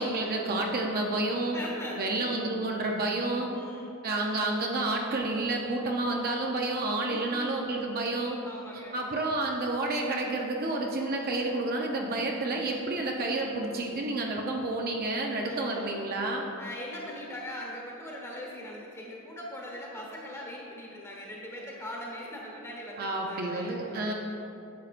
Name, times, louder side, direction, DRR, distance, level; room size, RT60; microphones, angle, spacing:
voice 1, 0.0-1.6 2.0-3.5 4.0-8.4 8.9-16.5 23.0-24.1, right 2 dB, 45° right, 0 dB, 0.6 m, -30 dB
voice 2, 1.5-2.3 3.5-3.9 7.0-7.4 7.9-8.1 8.4-9.2 15.4-16.0 16.6-24.1, left 1 dB, 10° left, -3 dB, 1.2 m, -41 dB
10.0 x 6.3 x 2.5 m, 3.0 s
head